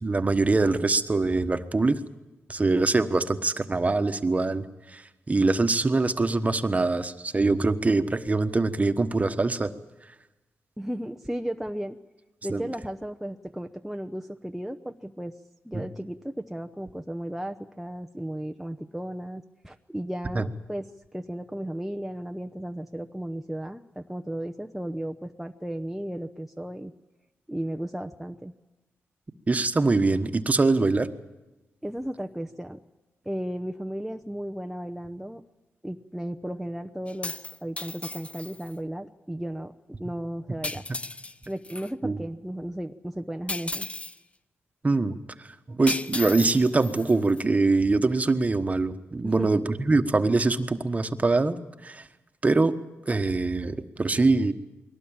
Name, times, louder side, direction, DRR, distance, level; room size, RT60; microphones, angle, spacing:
voice 1, 0.0-2.0 2.5-9.7 12.5-12.6 15.7-15.8 20.3-20.4 29.5-31.1 42.0-42.2 44.8-51.6 51.8-52.1 52.4-52.7 53.1-54.5, right 3 dB, 30° right, 9 dB, 1.3 m, -23 dB
voice 2, 10.8-12.0 12.4-15.4 15.6-20.8 21.1-26.9 27.5-28.5 31.8-32.8 33.2-35.4 35.8-39.7 40.0-40.8 41.5-43.9 49.2-49.6, right 1 dB, 5° right, 5 dB, 0.8 m, -35 dB
sound 1, 37.1-38.7 40.6-41.9 43.5-44.2 45.9-47.4, left 2 dB, 25° left, 0.7 m, -35 dB
22.0 x 18.5 x 8.8 m, 1.1 s
cardioid pair, 70°, 5 cm